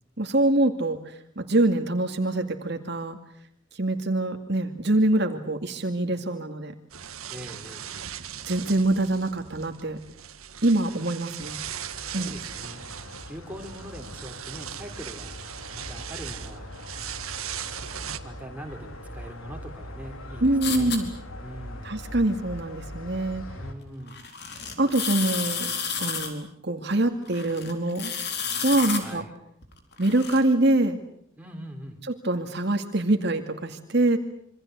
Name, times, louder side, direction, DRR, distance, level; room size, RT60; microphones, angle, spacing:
voice 1, 0.2-3.2 3.7-6.7 8.5-10.0 10.6-11.6 12.1-12.3 20.4-21.1 21.8-23.4 24.8-25.7 26.0-28.1 28.6-29.2 30.0-31.0 32.2-34.2, right 2 dB, 50° right, 5 dB, 2.2 m, -24 dB
sound 1, 6.9-18.2, right 10 dB, 90° right, 1.7 m, -39 dB
voice 2, 7.3-8.1 12.1-12.8 13.2-16.7 18.2-20.9 21.4-21.9 23.5-24.3 29.0-29.3 31.4-32.0, equal, 5° right, 2 dB, 3.8 m, -42 dB
sound 2, 11.4-23.7, left 1 dB, 80° left, 3.9 m, -41 dB
sound 3, 20.6-21.0 24.1-26.3 27.3-29.0 29.6-30.4, left 6 dB, 50° left, 4.5 m, -31 dB
27.0 x 25.5 x 8.2 m, 0.69 s
head